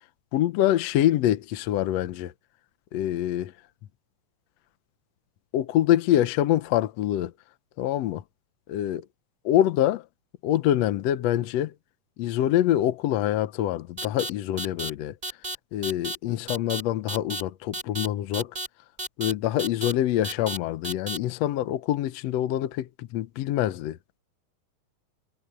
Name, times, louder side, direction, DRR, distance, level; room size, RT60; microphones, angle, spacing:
voice 1, 0.3-2.3 2.9-3.5 5.5-7.3 7.8-8.2 8.7-9.0 9.4-10.0 10.4-11.7 12.2-15.1 15.7-18.5 19.2-24.0, left 12 dB, 70° left, 1.7 m, -25 dB
sound 1, 14.0-14.3 14.6-14.9 15.2-15.6 15.8-16.2 16.5-16.8 17.1-17.4 17.7-18.1 18.3-18.7 19.0-19.3 19.6-19.9 20.2-20.6 20.8-21.2, right 2 dB, 15° right, 2.5 m, -32 dB
omnidirectional pair, 3.7 m